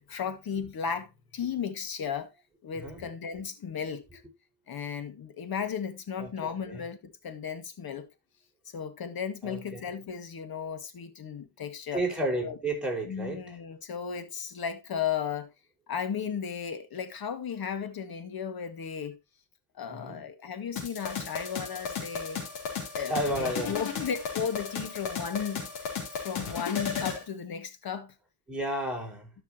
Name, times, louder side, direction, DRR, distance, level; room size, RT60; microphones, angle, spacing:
voice 1, 0.1-2.3 2.6-4.2 4.7-8.1 8.7-12.0 12.4-12.6 13.0-15.5 15.9-19.2 19.8-22.4 22.9-25.9 26.2-28.1, left 7 dB, 50° left, 1.9 m, -35 dB
voice 2, 6.2-6.8 9.4-9.8 11.9-13.6 19.9-20.2 23.0-23.7 28.5-29.3, right 1 dB, ahead, 4.9 m, -32 dB
sound 1, 20.8-27.2, left 6 dB, 85° left, 3.4 m, -34 dB
12.5 x 6.1 x 2.9 m
supercardioid pair, 85°, 47 cm